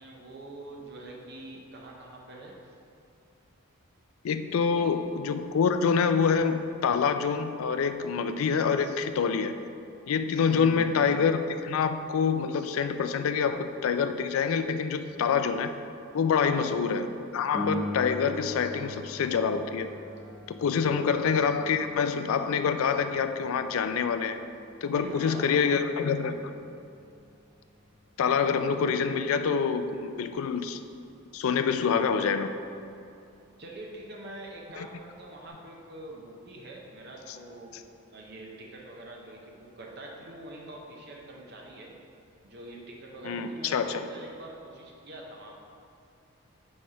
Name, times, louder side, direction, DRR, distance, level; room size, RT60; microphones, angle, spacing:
voice 1, 0.0-2.8 4.5-5.0 10.4-11.0 16.3-16.7 20.9-21.2 24.9-25.8 33.6-37.8 38.1-41.9 42.4-45.5, right 2 dB, 50° right, -1 dB, 0.7 m, -44 dB
voice 2, 4.2-9.6 10.1-15.7 16.1-17.1 17.3-19.9 20.6-24.4 24.8-26.4 28.2-30.8 31.3-32.5 34.8-34.9 43.2-44.0, left 6 dB, 75° left, 9 dB, 0.3 m, -26 dB
Piano, 17.5-27.9 35.5-35.6, left 1 dB, 25° right, 1.1 m, -42 dB
4.8 x 4.3 x 5.5 m, 2.6 s
head